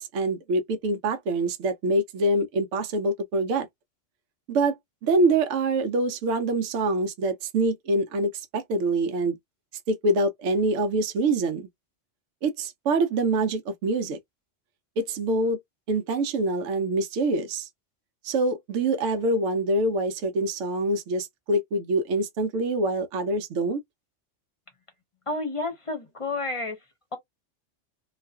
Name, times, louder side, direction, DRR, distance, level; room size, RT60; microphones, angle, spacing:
voice 1, 0.0-3.7 4.5-9.4 9.9-11.7 12.4-14.2 15.0-15.6 15.9-17.7 18.2-23.8, right 2 dB, 80° right, 0.9 m, -25 dB
voice 2, 25.3-26.8, left 2 dB, 30° left, 0.7 m, -30 dB
2.4 x 2.3 x 2.2 m
omnidirectional pair, 1.3 m